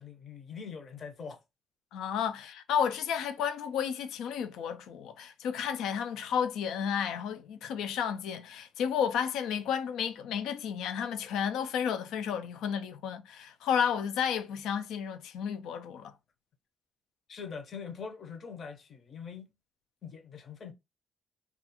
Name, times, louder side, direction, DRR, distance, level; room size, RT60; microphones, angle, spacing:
voice 1, 0.0-1.4 17.3-19.5 20.0-20.7, left 6 dB, 55° left, 0.6 m, -43 dB
voice 2, 1.9-16.1, left 8 dB, 85° left, 0.3 m, -32 dB
2.3 x 2.3 x 2.8 m
cardioid pair, 90°, 0 cm